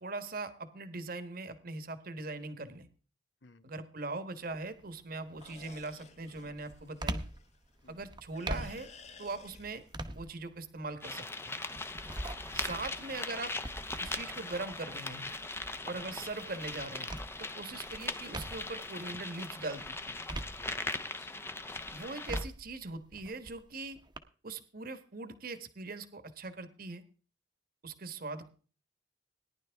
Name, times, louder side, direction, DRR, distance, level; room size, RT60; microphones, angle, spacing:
voice 1, 0.0-2.9 3.6-7.2 7.9-8.9 9.2-9.8 10.1-11.6 12.5-13.5 14.0-15.3 15.9-17.1 17.4-20.1 21.9-24.0 24.4-27.0 27.8-28.5, right 3 dB, 50° right, 10 dB, 1.3 m, -41 dB
sound 1, 4.5-4.9 5.4-18.9 19.3-21.2 21.6-24.2, right 1 dB, 25° right, 1.0 m, -44 dB
sound 2, 5.4-8.0 8.3-10.1, left 5 dB, 35° left, 1.0 m, -56 dB
sound 3, 11.0-22.4, left 3 dB, 15° left, 0.7 m, -40 dB
voice 2, 12.8-13.2 15.9-16.2 20.5-21.6, left 4 dB, 70° left, 11 dB, 1.2 m, -61 dB
18.5 x 10.5 x 3.5 m, 0.39 s
head